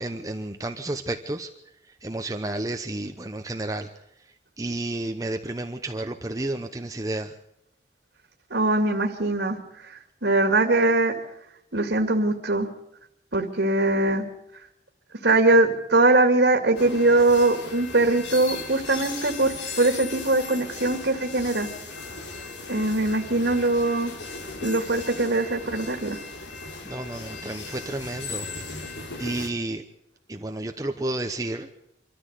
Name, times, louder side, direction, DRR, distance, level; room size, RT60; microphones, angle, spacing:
voice 1, 0.0-1.5 1.9-3.9 4.6-7.4 26.8-28.5 28.8-29.8 30.3-31.7, right 2 dB, 20° right, 6 dB, 0.9 m, -31 dB
voice 2, 8.5-9.6 9.8-11.2 11.7-12.7 13.3-14.2 15.2-21.7 22.7-24.1 24.6-26.2, right 2 dB, 75° right, 4 dB, 2.4 m, -22 dB
sound 1, 16.8-29.5, left 4 dB, 90° left, 3.3 m, -37 dB
25.0 x 14.0 x 8.2 m, 0.81 s
head